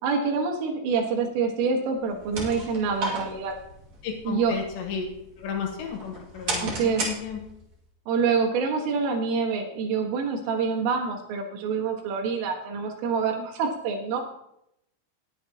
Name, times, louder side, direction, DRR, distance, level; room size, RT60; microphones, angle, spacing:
voice 1, 0.0-3.6 4.3-4.6 6.6-7.1 8.1-14.2, right 5 dB, 80° right, 2 dB, 4.1 m, -26 dB
sound 1, 2.0-7.7, right 3 dB, 45° right, 2.9 m, -35 dB
voice 2, 4.0-5.1 5.4-7.4, left 6 dB, 70° left, 3 dB, 3.3 m, -33 dB
19.5 x 8.5 x 2.9 m, 0.77 s
omnidirectional pair, 5.7 m